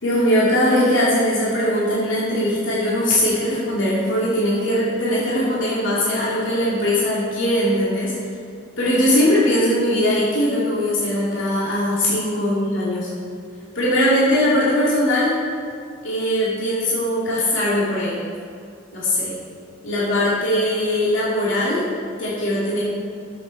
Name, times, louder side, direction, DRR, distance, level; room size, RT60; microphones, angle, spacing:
voice 1, 0.0-8.1 8.8-13.1 13.7-15.4 16.0-18.2 18.9-19.3 19.8-21.9 22.2-22.8, left 1 dB, 75° left, -8 dB, 2.8 m, -20 dB
7.8 x 7.8 x 6.4 m, 2.3 s
head